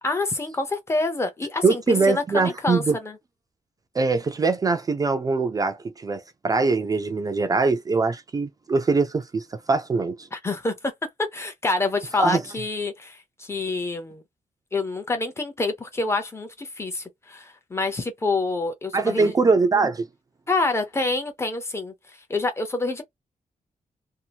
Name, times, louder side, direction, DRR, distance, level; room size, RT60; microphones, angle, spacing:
voice 1, 0.0-3.2 10.3-10.7 11.3-14.2 14.7-19.3 20.5-21.9 22.3-23.0, left 3 dB, 20° left, 0.7 m, -27 dB
voice 2, 1.6-3.0 3.9-10.3 12.2-12.4 18.9-20.0, right 4 dB, 25° right, 0.4 m, -22 dB
2.7 x 2.4 x 2.8 m
wide cardioid pair, 175°, 14 cm